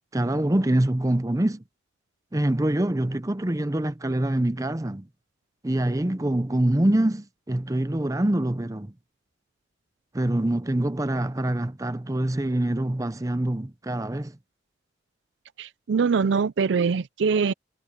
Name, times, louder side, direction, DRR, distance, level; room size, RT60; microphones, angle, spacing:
voice 1, 0.1-1.6 2.3-5.1 5.6-8.9 10.1-14.3, right 1 dB, 15° right, 0.6 m, -25 dB
voice 2, 15.6-17.5, right 5 dB, 75° right, 0.4 m, -23 dB
head